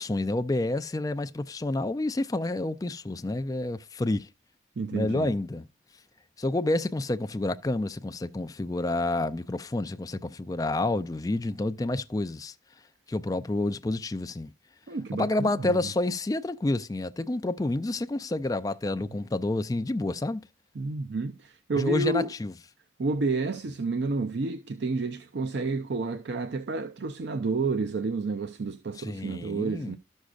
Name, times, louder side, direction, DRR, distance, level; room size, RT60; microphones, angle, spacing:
voice 1, 0.0-4.3 4.9-5.7 6.4-12.5 13.1-14.5 15.1-20.4 21.8-22.5 28.9-30.0, left 2 dB, 20° left, 0.3 m, -29 dB
voice 2, 4.8-5.3 14.9-15.9 20.8-22.3 23.0-30.0, right 3 dB, 65° right, 0.5 m, -30 dB
12.5 x 6.3 x 2.4 m
head